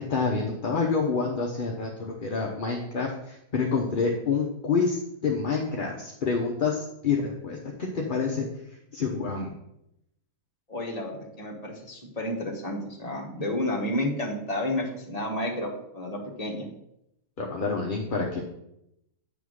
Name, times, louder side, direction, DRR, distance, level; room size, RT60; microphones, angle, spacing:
voice 1, 0.1-9.5 17.4-18.4, left 4 dB, 40° left, 0 dB, 0.8 m, -28 dB
voice 2, 10.7-16.7, left 1 dB, 25° left, 0 dB, 1.3 m, -31 dB
9.0 x 3.6 x 6.3 m, 0.82 s
omnidirectional pair, 1.6 m